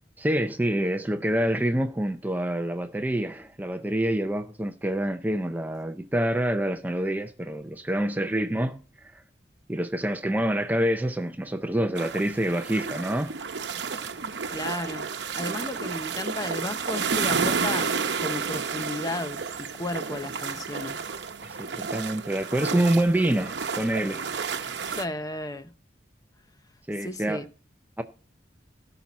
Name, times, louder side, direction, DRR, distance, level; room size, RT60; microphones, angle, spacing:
voice 1, 0.2-9.2 9.7-13.4 21.4-24.3 26.9-27.4 28.0-28.1, right 1 dB, 10° right, 0.5 m, -27 dB
sound 1, 11.9-25.0, right 5 dB, 85° right, 0.8 m, -31 dB
voice 2, 14.5-17.9 18.2-21.0 24.8-25.7 27.0-27.4, left 1 dB, 20° left, 0.8 m, -34 dB
17.5 x 6.0 x 4.1 m
head